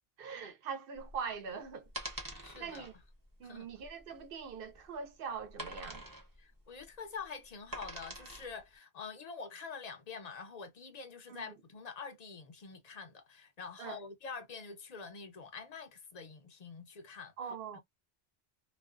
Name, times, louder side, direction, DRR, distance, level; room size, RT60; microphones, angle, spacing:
voice 1, 0.2-1.9 2.6-2.9 3.4-6.0 11.3-11.5 13.8-14.0 17.4-17.8, right 6 dB, 65° right, 0.8 m, -42 dB
sound 1, 1.0-8.6, right 1 dB, 25° right, 0.6 m, -46 dB
voice 2, 2.4-2.9 3.4-3.7 6.4-17.3 17.7-17.8, left 5 dB, 50° left, 0.5 m, -46 dB
2.4 x 2.2 x 2.4 m
omnidirectional pair, 1.1 m